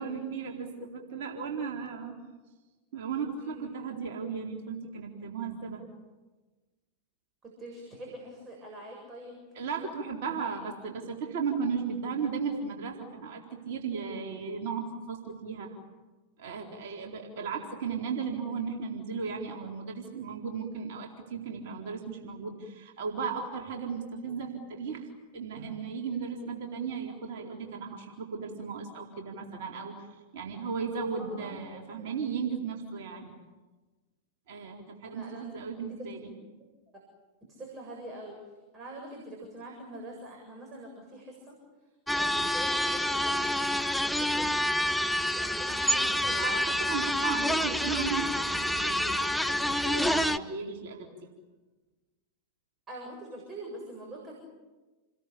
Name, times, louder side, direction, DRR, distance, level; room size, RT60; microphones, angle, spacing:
voice 1, 0.0-2.2 2.9-5.8 9.6-15.7 16.4-25.1 25.3-30.1 30.3-33.3 34.5-36.3 45.8-51.0, right 5 dB, 50° right, 1 dB, 4.1 m, -36 dB
voice 2, 3.4-3.9 7.4-9.4 10.5-10.6 26.1-26.2 31.1-32.1 35.0-35.7 36.9-37.0 37.5-41.5 42.1-43.6 44.0-44.7 45.3-46.6 48.3-48.4 52.9-54.3, right 1 dB, 25° right, 0 dB, 7.6 m, -45 dB
sound 1, 42.1-50.4, left 1 dB, ahead, 1.0 m, -28 dB
29.5 x 21.5 x 8.6 m, 1.2 s
figure-of-eight pair, 90°, 0 cm